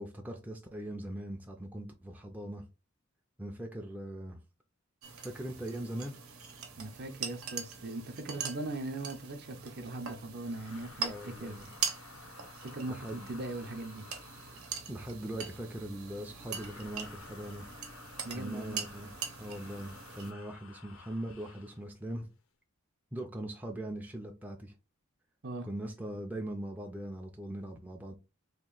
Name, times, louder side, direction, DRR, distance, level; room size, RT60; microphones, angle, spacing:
voice 1, 0.0-2.6 3.4-4.4 5.2-6.2 11.0-11.8 12.9-13.3 14.9-17.7 18.3-22.3 23.1-24.7 25.6-28.1, right 1 dB, 10° right, 0.4 m, -41 dB
sound 1, 5.0-20.3, right 6 dB, 90° right, 0.8 m, -42 dB
voice 2, 6.8-11.6 12.6-14.0 18.2-18.8 25.4-25.7, right 2 dB, 50° right, 0.6 m, -40 dB
sound 2, 10.4-15.0 16.4-21.8, left 5 dB, 75° left, 0.6 m, -53 dB
2.9 x 2.5 x 3.7 m
head